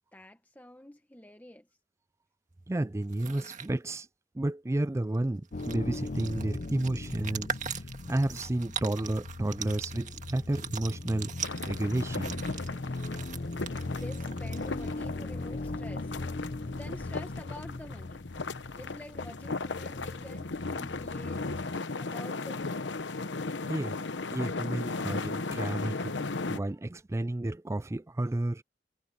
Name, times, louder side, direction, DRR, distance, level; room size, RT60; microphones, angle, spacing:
voice 1, 0.1-1.7 13.8-16.2 16.7-18.2 18.8-21.6 22.0-22.8, left 1 dB, 10° left, 1.3 m, -48 dB
voice 2, 2.7-4.1 4.3-7.5 8.1-12.4 23.7-28.6, right 1 dB, 15° right, 0.4 m, -31 dB
sound 1, 3.0-3.7 5.1-5.2 5.5-15.0, right 7 dB, 45° right, 1.7 m, -41 dB
sound 2, 5.5-21.8, left 2 dB, 45° left, 0.7 m, -39 dB
Bubbling Hot Spring, 11.4-26.6, left 3 dB, 80° left, 1.0 m, -37 dB
head